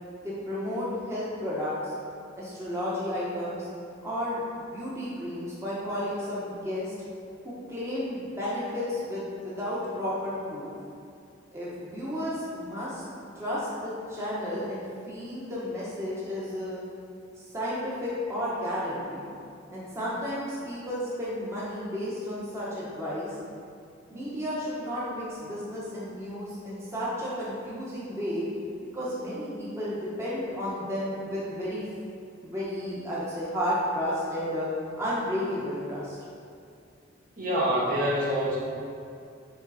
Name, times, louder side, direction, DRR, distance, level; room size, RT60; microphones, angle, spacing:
voice 1, 0.2-1.9 2.3-3.7 4.0-6.9 7.4-10.7 11.5-13.0 13.3-16.8 17.4-19.3 19.7-23.3 24.1-28.4 28.9-31.9 32.4-34.7 35.0-36.2, equal, 15° right, -9 dB, 1.2 m, -32 dB
voice 2, 37.4-38.6, equal, 45° right, -7 dB, 1.5 m, -26 dB
7.0 x 4.5 x 4.1 m, 2.5 s
head